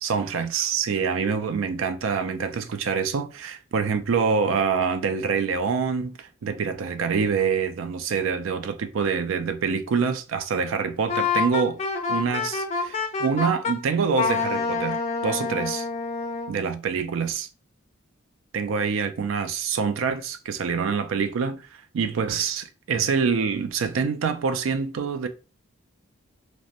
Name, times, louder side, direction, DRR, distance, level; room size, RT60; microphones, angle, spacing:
voice 1, 0.0-11.8 12.1-15.9 16.5-17.5 18.5-21.7 21.9-25.3, right 5 dB, 85° right, 0.4 m, -26 dB
Wind instrument woodwind instrument, 11.1-13.8 14.2-16.6, left 4 dB, 35° left, 0.4 m, -27 dB
2.7 x 2.1 x 2.5 m
head